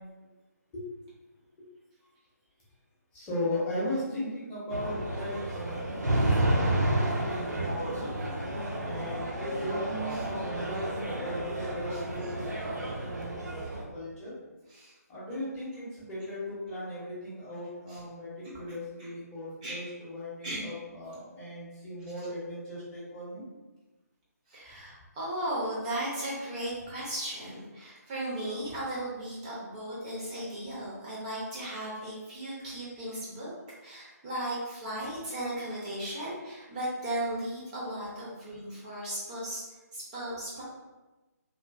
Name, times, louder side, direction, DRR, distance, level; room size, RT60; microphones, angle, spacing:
voice 1, 3.1-8.1 8.8-14.3 15.1-23.4, left 1 dB, 10° left, -9 dB, 0.7 m, -37 dB
sound 1, 4.7-13.8, right 1 dB, 85° right, 0.6 m, -31 dB
voice 2, 18.4-19.1 19.6-19.8 20.4-20.6 24.5-33.5 33.8-39.7 39.9-40.6, right 1 dB, 25° right, -6 dB, 0.5 m, -36 dB
2.5 x 2.4 x 2.3 m, 1.2 s
figure-of-eight pair, 145°, 9 cm